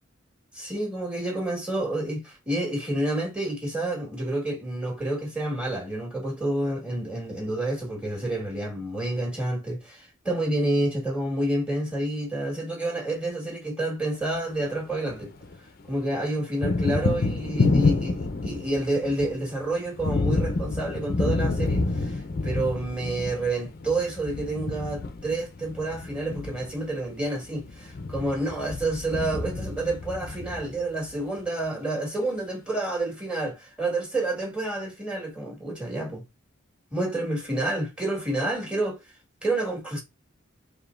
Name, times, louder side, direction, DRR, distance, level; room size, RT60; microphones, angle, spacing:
voice 1, 0.5-15.3 15.9-36.2 36.9-39.0 39.4-40.0, right 1 dB, 5° right, 1.6 m, -29 dB
Thunder, 14.4-15.6 15.8-31.1, left 3 dB, 45° left, 0.5 m, -28 dB
4.8 x 2.9 x 2.5 m
head